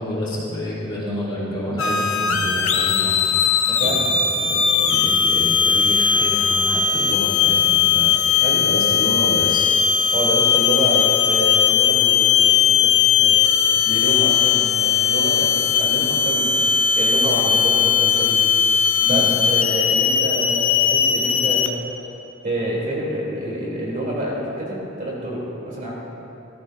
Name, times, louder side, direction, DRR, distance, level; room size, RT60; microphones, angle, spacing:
voice 1, 0.0-3.2 3.8-4.1 4.4-8.1 8.6-9.7 19.1-19.4, left 1 dB, 20° left, -9 dB, 2.7 m, -29 dB
sound 1, 1.8-21.7, left 7 dB, 65° left, 0.9 m, -18 dB
voice 2, 3.7-4.1 8.4-8.7 10.1-13.4 13.7-16.6 16.9-18.5 19.0-21.7 22.4-25.9, right 1 dB, 40° right, -5 dB, 3.1 m, -27 dB
19.0 x 14.0 x 2.7 m, 2.9 s
head